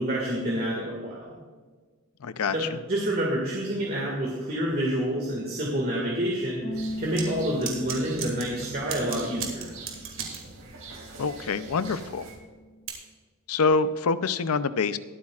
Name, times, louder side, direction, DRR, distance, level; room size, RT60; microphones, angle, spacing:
voice 1, 0.0-1.3 2.5-2.6 2.9-9.7, right 1 dB, 45° right, -3 dB, 2.0 m, -28 dB
voice 2, 2.2-2.8 11.2-12.3 13.5-15.0, left 4 dB, 85° left, 13 dB, 0.5 m, -26 dB
Bass guitar, 6.6-12.9, equal, 60° left, 3.7 m, -40 dB
sound 1, 6.7-12.4, right 3 dB, 85° right, 3.6 m, -44 dB
sound 2, 7.2-7.3 7.6-8.5 8.9-10.4 12.9-13.0, right 8 dB, 60° right, 2.3 m, -33 dB
22.5 x 8.5 x 2.4 m, 1.4 s
head